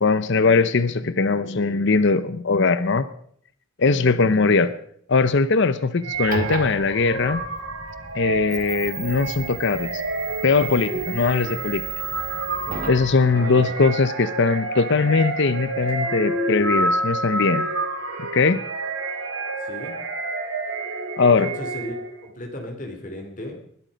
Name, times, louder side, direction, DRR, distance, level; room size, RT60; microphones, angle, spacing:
voice 1, 0.0-3.1 3.8-4.7 5.1-7.4 8.1-10.0 10.4-11.8 12.9-17.7 18.2-18.6 21.2-21.5, left 4 dB, 60° left, 14 dB, 0.7 m, -20 dB
sound 1, 6.0-22.2, right 2 dB, 85° right, 3.5 m, -29 dB
sound 2, 6.1-13.1, right 5 dB, 40° right, 2.2 m, -34 dB
voice 2, 13.3-13.7 19.6-20.0 21.4-21.9 22.2-23.6, left 1 dB, 40° left, 3 dB, 2.7 m, -35 dB
21.0 x 12.0 x 5.2 m, 0.64 s
head